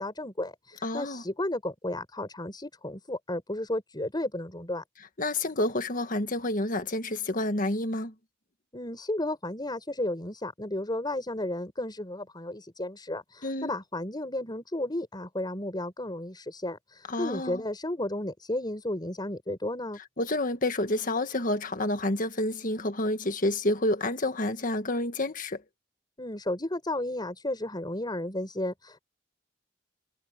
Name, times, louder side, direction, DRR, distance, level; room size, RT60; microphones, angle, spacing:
voice 1, 0.0-4.8 8.7-20.0 26.2-29.0, left 1 dB, 25° left, 5.0 m, -33 dB
voice 2, 0.8-1.2 5.2-8.1 13.4-13.7 17.1-17.6 20.2-25.6, left 1 dB, 45° left, 1.7 m, -29 dB
head